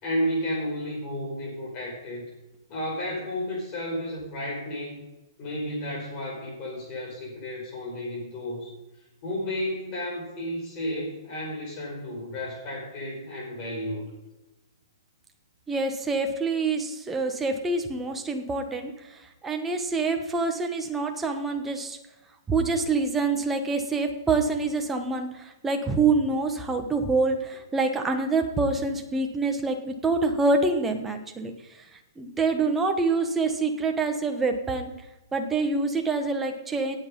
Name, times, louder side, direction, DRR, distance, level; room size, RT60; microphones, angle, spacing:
voice 1, 0.0-2.3 2.7-5.0 5.4-8.7 9.2-14.1, equal, 25° left, -2 dB, 5.1 m, -32 dB
voice 2, 15.7-22.0 22.5-31.8 32.2-34.9 35.3-37.0, right 3 dB, 10° right, 4 dB, 1.2 m, -26 dB
17.5 x 8.0 x 5.4 m, 1.0 s
hypercardioid pair, 165°, 3 cm